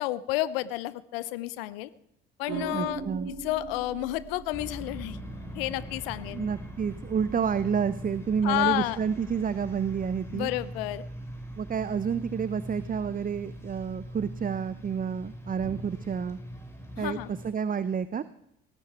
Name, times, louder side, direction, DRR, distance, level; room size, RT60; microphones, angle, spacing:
voice 1, 0.0-1.9 2.4-3.0 3.3-5.2 5.5-6.5 8.4-9.0 10.3-11.0 17.0-17.3, left 16 dB, 75° left, 18 dB, 0.7 m, -30 dB
sound 1, 2.5-11.0, right 4 dB, 55° right, 5.8 m, -43 dB
voice 2, 2.7-3.3 6.3-10.5 11.6-16.4 17.0-17.2 17.4-18.2, right 7 dB, 30° right, 16 dB, 0.7 m, -29 dB
sound 2, 4.5-17.5, equal, 10° left, 4.4 m, -41 dB
18.0 x 13.5 x 4.6 m, 0.77 s
figure-of-eight pair, 50°, 30 cm